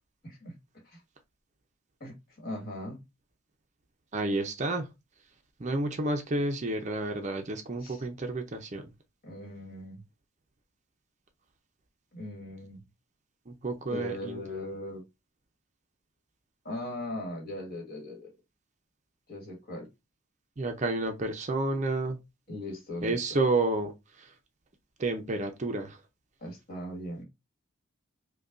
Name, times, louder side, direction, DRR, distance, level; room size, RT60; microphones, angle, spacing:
voice 1, 0.2-0.6 0.8-1.0 2.0-3.0 7.8-8.0 9.2-10.0 12.1-12.8 13.9-15.0 16.6-18.3 19.3-19.9 22.5-23.4 26.4-27.2, left 1 dB, 45° left, 1.6 m, -39 dB
voice 2, 4.1-4.9 5.6-8.9 13.5-14.4 20.6-22.2 23.0-23.9 24.2-24.3 25.0-26.0, right 2 dB, 35° right, 0.5 m, -30 dB
5.2 x 2.2 x 2.4 m
head